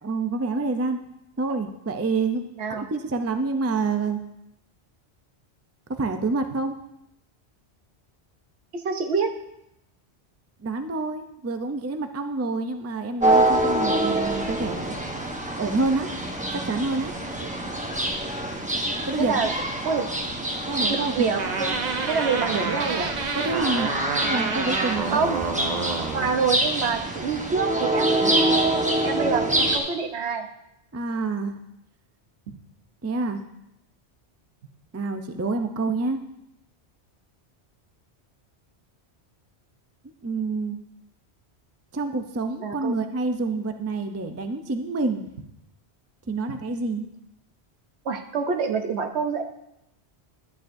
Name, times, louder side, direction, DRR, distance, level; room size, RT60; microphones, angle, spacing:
voice 1, 0.0-1.0 1.4-4.2 6.0-6.8 10.6-14.9 15.6-16.1 16.5-17.1 19.0-19.4 20.6-21.3 23.3-23.9 24.2-25.2 30.9-31.5 33.0-33.4 34.9-36.2 40.2-40.8 41.9-45.3 46.3-47.1, right 3 dB, 25° right, 7 dB, 0.3 m, -27 dB
voice 2, 8.7-9.3 17.4-17.5 19.2-19.5 19.8-20.1 20.9-21.8 22.1-23.1 25.1-25.5 26.1-28.6 29.0-30.5 32.5-32.6 42.6-42.9 48.0-49.4, right 5 dB, 80° right, 6 dB, 1.1 m, -26 dB
sound 1, 13.2-29.8, right 1 dB, 10° right, 0.8 m, -26 dB
sound 2, 21.4-26.3, right 4 dB, 45° right, 0.8 m, -29 dB
11.5 x 9.3 x 2.6 m, 0.83 s
omnidirectional pair, 1.1 m